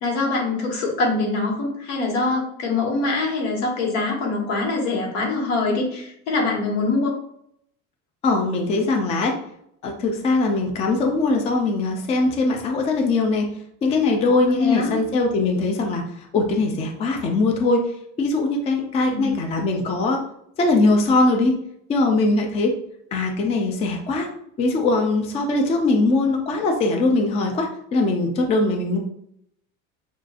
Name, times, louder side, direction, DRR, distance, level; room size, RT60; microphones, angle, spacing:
voice 1, 0.0-7.1 14.4-15.0 19.1-19.3, left 3 dB, 85° left, -1 dB, 1.6 m, -24 dB
voice 2, 8.2-9.3 9.8-13.5 13.8-17.8 18.2-20.2 20.6-21.6 21.9-22.7 23.1-24.3 24.6-29.0, left 3 dB, 20° left, 2 dB, 0.3 m, -21 dB
6.1 x 2.3 x 2.4 m, 0.73 s
cardioid pair, 170°, 35 cm